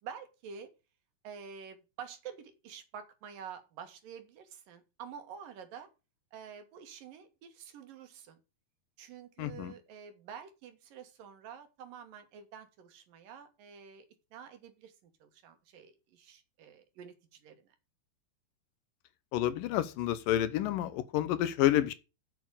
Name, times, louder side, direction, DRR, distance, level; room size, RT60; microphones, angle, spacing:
voice 1, 0.0-0.7 1.2-5.9 6.3-8.4 9.0-14.1 14.3-14.9 15.2-17.6, right 7 dB, 70° right, 3.4 m, -48 dB
voice 2, 9.4-9.7 19.3-21.9, left 12 dB, 75° left, 2.4 m, -29 dB
8.3 x 8.2 x 6.4 m
omnidirectional pair, 4.2 m